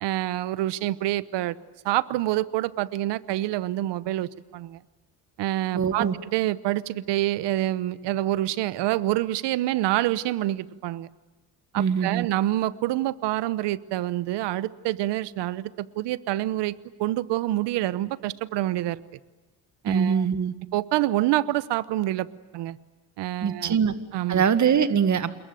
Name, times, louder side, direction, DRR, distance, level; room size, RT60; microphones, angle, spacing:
voice 1, 0.0-1.5 1.8-4.8 5.4-11.1 11.7-16.7 17.0-19.0 19.8-20.3 20.7-22.3 22.5-22.8 23.2-23.8 24.1-24.4, right 15 dB, 90° right, 17 dB, 1.1 m, -27 dB
voice 2, 5.7-6.2 11.8-12.3 19.8-20.5 23.4-23.9 24.3-25.3, right 7 dB, 45° right, 11 dB, 1.9 m, -22 dB
28.0 x 22.0 x 9.2 m, 1.2 s
cardioid pair, 105°, 41 cm